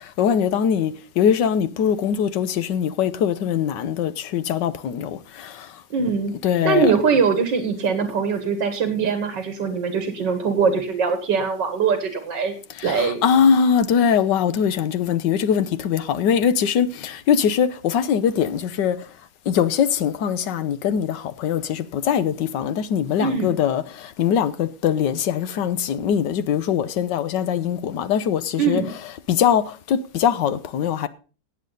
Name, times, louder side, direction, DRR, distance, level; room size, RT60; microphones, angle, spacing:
voice 1, 0.2-5.2 6.4-6.9 12.8-19.0 19.5-23.8 24.2-28.8 29.3-29.6 29.9-31.1, left 8 dB, 80° left, 1.5 m, -21 dB
voice 2, 5.9-6.3 6.6-12.5 12.8-13.2 23.2-23.6 28.6-28.9, right 5 dB, 85° right, 2.1 m, -22 dB
18.0 x 7.5 x 3.9 m
omnidirectional pair, 1.9 m